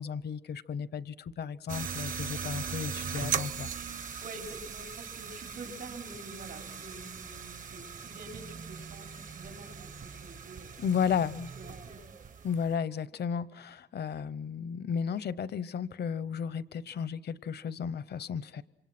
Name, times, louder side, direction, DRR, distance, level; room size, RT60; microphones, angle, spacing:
voice 1, 0.0-4.2 10.8-11.5 12.4-18.6, left 7 dB, 75° left, 0.7 m, -34 dB
sound 1, 1.7-12.7, right 7 dB, 50° right, 0.8 m, -39 dB
voice 2, 4.2-10.7 11.3-12.0, right 2 dB, 85° right, 4.6 m, -47 dB
27.0 x 26.5 x 6.0 m
wide cardioid pair, 150°, 17 cm